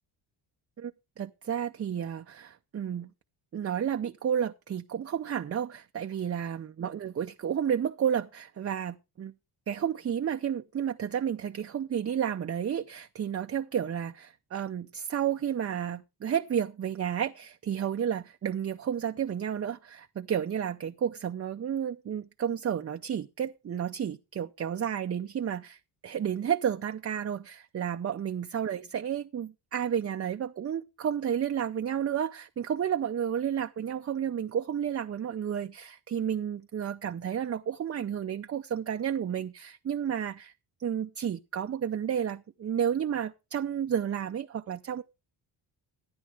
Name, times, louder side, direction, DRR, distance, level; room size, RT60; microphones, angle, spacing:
voice 1, 1.2-3.1 3.5-9.3 9.7-40.5 40.8-45.0, right 8 dB, 30° right, 0.5 m, -31 dB
14.5 x 9.6 x 3.4 m
cardioid pair, 110°, 49 cm